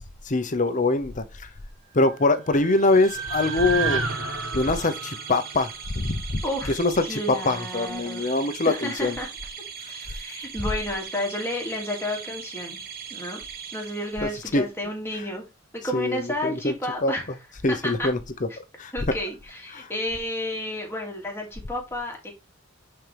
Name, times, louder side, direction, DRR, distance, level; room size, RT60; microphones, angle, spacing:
voice 1, 0.2-1.2 1.9-4.0 4.5-5.7 6.0-9.2 14.2-14.7 15.1-15.2 15.8-17.4 17.6-18.5 18.8-19.2 19.7-19.9, left 2 dB, 40° left, 0.9 m, -24 dB
sound 1, 2.1-6.4, right 5 dB, 75° right, 2.1 m, -32 dB
sound 2, 2.7-14.6, right 7 dB, 45° right, 1.3 m, -40 dB
voice 2, 6.4-8.4 8.7-9.3 9.9-12.8 13.1-13.4 13.7-15.5 15.7-17.3 17.7-18.1 18.9-22.3, left 1 dB, 10° left, 2.5 m, -31 dB
9.8 x 4.5 x 3.4 m
head